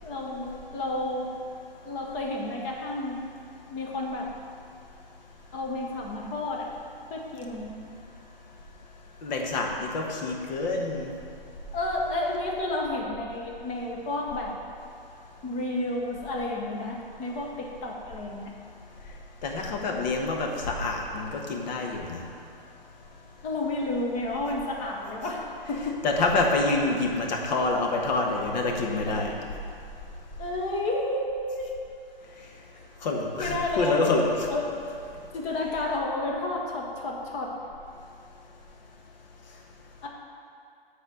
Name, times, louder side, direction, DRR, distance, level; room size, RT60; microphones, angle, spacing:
voice 1, 0.0-1.3 1.8-3.2 3.7-4.3 5.5-6.7 7.1-7.8 11.7-14.6 15.4-18.5 23.4-26.0 30.4-31.7 32.7-32.8 33.4-34.0 34.5-34.7 35.3-37.5 39.5-39.6 40.0-40.1, left 2 dB, 20° left, -1 dB, 1.1 m, -31 dB
voice 2, 9.2-11.1 19.4-22.2 26.0-29.3 33.0-34.5, left 3 dB, 50° left, 1 dB, 1.3 m, -27 dB
7.9 x 4.3 x 6.2 m, 2.5 s
hypercardioid pair, 130°, 29 cm